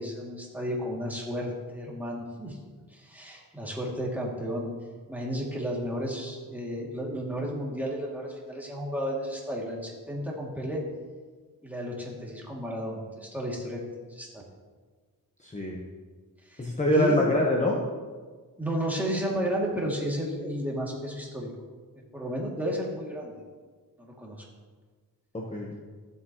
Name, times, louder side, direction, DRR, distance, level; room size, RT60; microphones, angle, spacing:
voice 1, 0.0-2.6 2.9-4.7 5.1-10.8 11.6-14.4 16.5-17.2 18.6-21.5 22.1-23.3 24.0-24.4, equal, 5° right, -4 dB, 2.5 m, -32 dB
voice 2, 15.4-15.9 16.6-17.8 25.3-25.7, left 1 dB, 20° left, -2 dB, 1.2 m, -25 dB
15.0 x 7.9 x 3.1 m, 1.5 s
cardioid pair, 100°, 38 cm